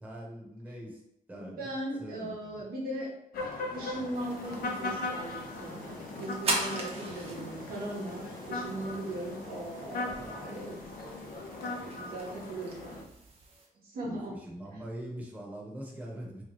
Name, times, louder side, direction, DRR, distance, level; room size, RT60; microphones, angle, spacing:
voice 1, 0.0-1.0 1.3-2.6 12.5-12.7 14.0-16.4, right 1 dB, 10° right, -3 dB, 0.9 m, -43 dB
voice 2, 1.3-3.1 3.7-10.8 11.6-13.0 13.7-14.4, right 1 dB, 90° right, -3 dB, 1.2 m, -39 dB
sound 1, 3.3-13.0, left 2 dB, 90° left, 0.7 m, -39 dB
sound 2, 4.0-13.0, right 2 dB, 65° right, 1.1 m, -53 dB
sound 3, 4.2-13.7, right 2 dB, 40° right, 0.8 m, -41 dB
3.4 x 3.0 x 3.1 m, 0.81 s
wide cardioid pair, 135°, 15 cm